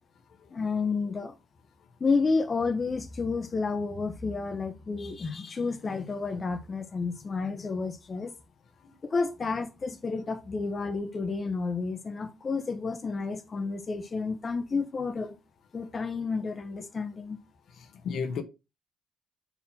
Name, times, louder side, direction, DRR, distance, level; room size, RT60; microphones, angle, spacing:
voice 1, 0.5-1.3 2.0-8.3 9.0-15.3 15.7-17.4, left 4 dB, 35° left, 1.1 m, -30 dB
voice 2, 17.8-18.4, left 6 dB, 70° left, 1.1 m, -34 dB
5.7 x 4.3 x 5.9 m
cardioid pair, 90°, 0 cm